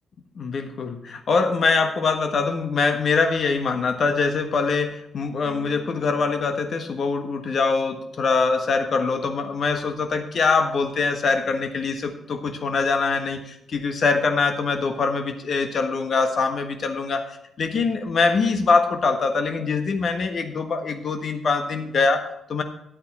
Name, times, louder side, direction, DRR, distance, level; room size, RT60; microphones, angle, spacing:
voice 1, 0.3-17.2 17.6-22.6, left 4 dB, 55° left, 6 dB, 1.4 m, -23 dB
sound 1, 5.4-15.2, left 2 dB, 70° left, 4.1 m, -52 dB
10.5 x 8.6 x 4.3 m, 0.81 s
hypercardioid pair, 45°, 0 cm